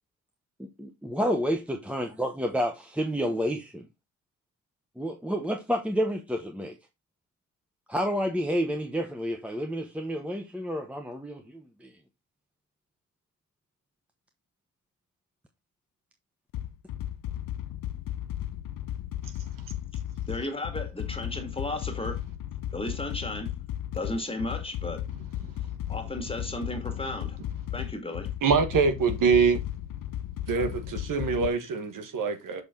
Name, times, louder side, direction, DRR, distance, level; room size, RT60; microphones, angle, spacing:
voice 1, 0.8-3.9 5.0-6.7 7.9-11.9, equal, 5° right, 1.0 m, -30 dB
sound 1, 16.5-31.5, left 12 dB, 75° left, 0.6 m, -35 dB
voice 2, 20.3-22.2 22.7-23.5 23.9-25.0 25.9-27.4 27.7-28.3, left 1 dB, 15° left, 2.1 m, -34 dB
voice 3, 28.4-29.6 30.5-32.6, right 5 dB, 65° right, 1.5 m, -24 dB
6.1 x 5.4 x 3.8 m
cardioid pair, 75°, 34 cm